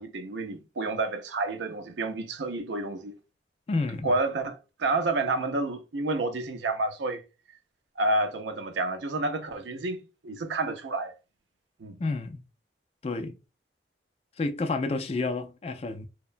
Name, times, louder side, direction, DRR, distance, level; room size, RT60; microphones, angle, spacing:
voice 1, 0.0-3.2 4.0-7.2 8.0-11.1 11.8-12.0, right 2 dB, 80° right, 0.5 m, -29 dB
voice 2, 3.7-4.2 12.0-12.4 13.0-13.4 14.4-16.1, left 3 dB, 35° left, 0.3 m, -30 dB
2.8 x 2.1 x 2.4 m
head